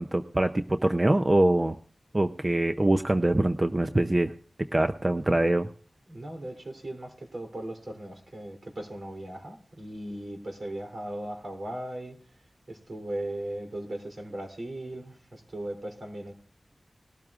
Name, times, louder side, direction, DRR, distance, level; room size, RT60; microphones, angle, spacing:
voice 1, 0.0-1.7 2.1-4.3 4.7-5.7, right 1 dB, 35° right, 7 dB, 0.6 m, -24 dB
voice 2, 6.1-12.2 12.7-16.3, right 1 dB, 65° right, 3 dB, 3.2 m, -38 dB
20.0 x 12.5 x 2.5 m, 0.42 s
wide cardioid pair, 60°, 0 cm